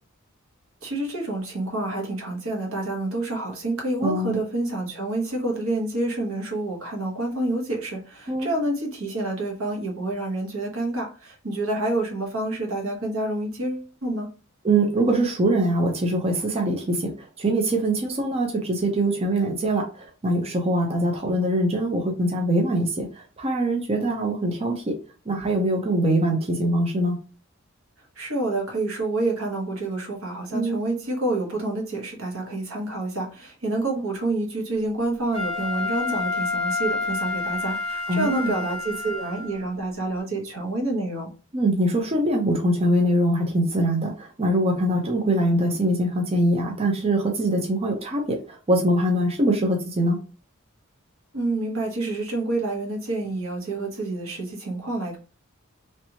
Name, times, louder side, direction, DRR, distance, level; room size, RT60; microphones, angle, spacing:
voice 1, 0.8-14.3 28.2-41.3 51.3-55.2, right 2 dB, 80° right, 1.2 m, -28 dB
voice 2, 4.0-4.4 8.3-8.5 14.6-24.9 25.3-27.2 30.5-30.8 38.1-38.5 41.5-50.2, right 1 dB, 30° right, 0.6 m, -23 dB
Wind instrument woodwind instrument, 35.3-39.6, left 3 dB, ahead, 1.4 m, -29 dB
3.2 x 2.9 x 2.8 m
head